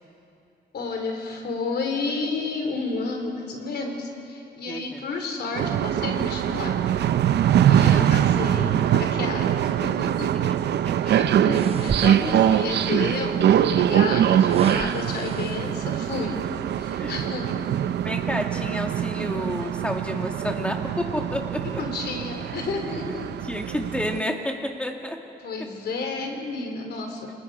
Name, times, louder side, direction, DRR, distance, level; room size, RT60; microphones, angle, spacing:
voice 1, 0.7-6.7 7.5-10.3 11.0-16.4 16.7-17.7 21.6-23.3 25.4-27.3, left 3 dB, 70° left, 3 dB, 3.6 m, -31 dB
voice 2, 4.7-5.0 7.8-8.1 10.8-11.1 12.2-12.4 14.8-14.9 17.0-17.2 18.0-21.8 23.4-25.2, left 1 dB, 5° left, 2 dB, 2.2 m, -30 dB
sound 1, 5.6-24.2, right 10 dB, 80° right, 0.6 m, -23 dB
sound 2, 11.5-12.9 13.9-15.9 16.5-16.7, right 7 dB, 35° right, 0.4 m, -35 dB
29.0 x 21.0 x 4.9 m, 2.7 s
cardioid pair, 95°, 17 cm